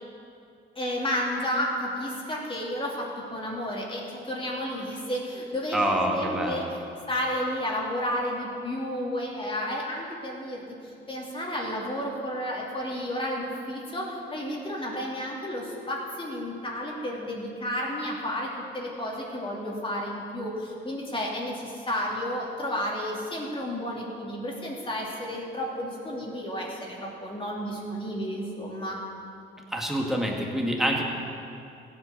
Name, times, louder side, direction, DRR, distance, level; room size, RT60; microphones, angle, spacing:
voice 1, 0.8-6.6 7.1-10.6 11.1-29.0, equal, 25° left, -3 dB, 3.0 m, -32 dB
voice 2, 5.7-6.7 29.7-31.0, equal, ahead, -1 dB, 2.3 m, -26 dB
15.5 x 8.6 x 6.8 m, 2.6 s
cardioid pair, 90°, 20 cm